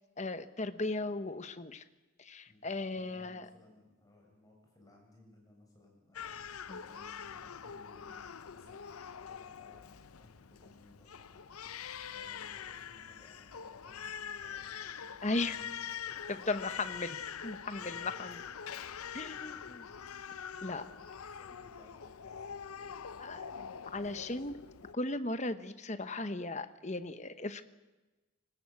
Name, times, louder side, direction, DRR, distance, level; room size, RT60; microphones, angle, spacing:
voice 1, 0.2-1.8 2.2-3.4 6.7-6.8 15.2-15.6 16.3-17.1 17.4-18.4 19.1-19.9 20.6-20.8 23.2-23.4 23.9-24.5 24.9-27.6, left 2 dB, 30° left, 10 dB, 1.0 m, -36 dB
voice 2, 2.5-15.8 16.0-16.8 17.8-20.1 20.7-24.6 25.1-25.2, left 2 dB, 15° left, 0 dB, 7.5 m, -61 dB
Crying sobbing, 6.1-24.9, left 8 dB, 90° left, 0.7 m, -44 dB
23.5 x 19.0 x 8.4 m, 1.1 s
head